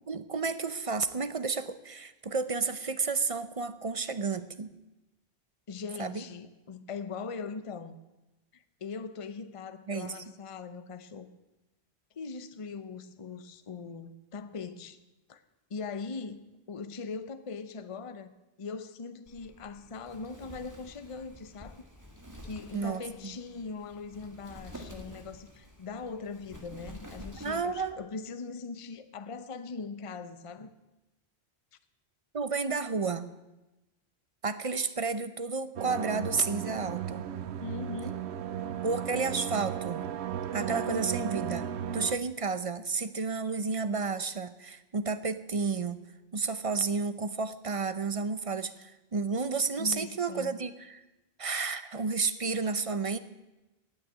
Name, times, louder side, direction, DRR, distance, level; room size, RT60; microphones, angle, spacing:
voice 1, 0.1-4.7 6.0-6.2 9.9-10.2 22.7-23.3 27.4-28.0 32.3-33.3 34.4-37.3 38.8-40.1 40.5-46.0 46.3-51.0 51.4-53.2, right 4 dB, 35° right, 13 dB, 0.7 m, -31 dB
voice 2, 5.7-8.0 8.5-11.3 12.2-15.0 15.3-15.4 15.7-21.8 22.4-30.7 37.6-38.3 49.8-50.5, left 4 dB, 35° left, 12 dB, 0.8 m, -41 dB
Wind, 19.3-27.9, equal, 15° right, 1.7 m, -49 dB
sound 1, 35.8-42.2, right 9 dB, 80° right, 1.0 m, -35 dB
18.0 x 6.6 x 9.3 m, 1.0 s
omnidirectional pair, 1.1 m